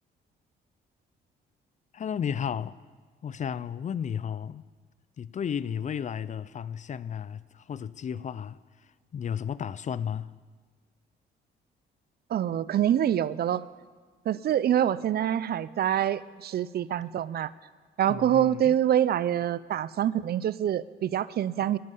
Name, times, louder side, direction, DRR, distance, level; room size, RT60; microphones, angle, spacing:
voice 1, 1.9-2.8 3.2-4.6 5.2-8.6 9.1-10.3 18.1-18.7, left 8 dB, 40° left, 0.5 m, -33 dB
voice 2, 12.3-13.6 14.3-17.5 18.0-21.8, right 10 dB, 55° right, 0.5 m, -26 dB
20.0 x 7.3 x 5.5 m
cardioid pair, 90°, 20 cm